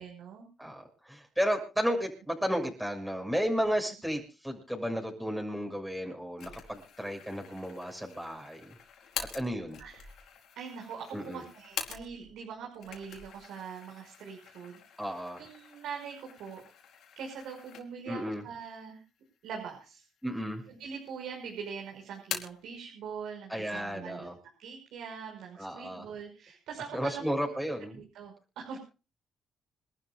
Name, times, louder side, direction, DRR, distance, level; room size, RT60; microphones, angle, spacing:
voice 1, 0.0-0.5 9.8-10.2 10.6-14.8 15.1-16.6 17.2-19.0 19.4-20.0 20.7-24.3 24.6-27.5 27.9-28.8, right 6 dB, 85° right, 1 dB, 5.6 m, -43 dB
voice 2, 0.6-8.7 9.3-9.8 11.1-11.4 15.0-15.4 18.1-18.4 20.2-20.6 23.5-24.3 25.6-26.0 26.9-28.0, equal, ahead, 2 dB, 6.5 m, -33 dB
sound 1, 6.4-12.4 12.7-18.2 18.6-18.7 19.5-20.2 20.5-21.3 21.6-22.7, left 8 dB, 75° left, 4.3 m, -45 dB
27.5 x 12.5 x 2.4 m, 0.33 s
cardioid pair, 90°, 0 cm